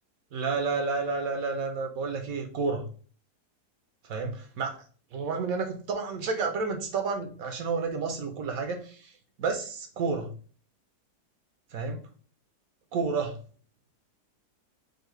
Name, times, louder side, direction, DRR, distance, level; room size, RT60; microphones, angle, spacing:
voice 1, 0.3-2.9 4.0-4.8 5.1-9.1 9.4-10.3 11.7-12.0 12.9-13.4, right 4 dB, 65° right, 6 dB, 1.1 m, -30 dB
5.5 x 2.2 x 4.4 m, 0.40 s
omnidirectional pair, 1.7 m